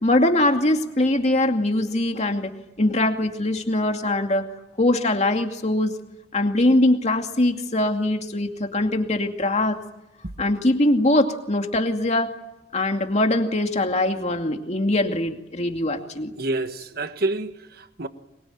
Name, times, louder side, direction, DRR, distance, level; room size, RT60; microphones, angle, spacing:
voice 1, 0.0-2.5 2.8-4.5 4.8-5.9 6.3-9.8 10.4-12.3 12.7-16.3, left 1 dB, 40° left, 2.4 m, -22 dB
voice 2, 16.4-18.1, right 2 dB, 60° right, 1.6 m, -28 dB
24.0 x 23.0 x 9.3 m
head